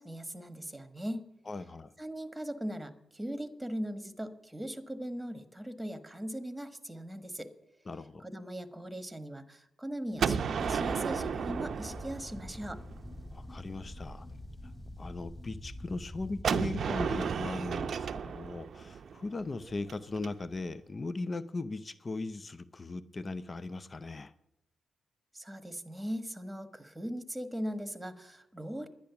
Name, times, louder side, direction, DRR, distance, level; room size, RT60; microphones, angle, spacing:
voice 1, 0.0-1.3 2.0-7.5 8.2-12.8 25.3-28.9, equal, 10° right, 10 dB, 1.4 m, -39 dB
voice 2, 1.5-1.9 7.9-8.3 13.3-14.3 15.0-24.3, left 3 dB, 35° left, 15 dB, 0.6 m, -38 dB
Gunshot gunfire, 10.2-13.0 16.4-20.3, right 6 dB, 65° right, 0.6 m, -33 dB
sound 1, 10.6-16.4, left 1 dB, 15° left, 2.7 m, -45 dB
10.5 x 10.0 x 6.9 m, 0.85 s
cardioid pair, 60°, 0 cm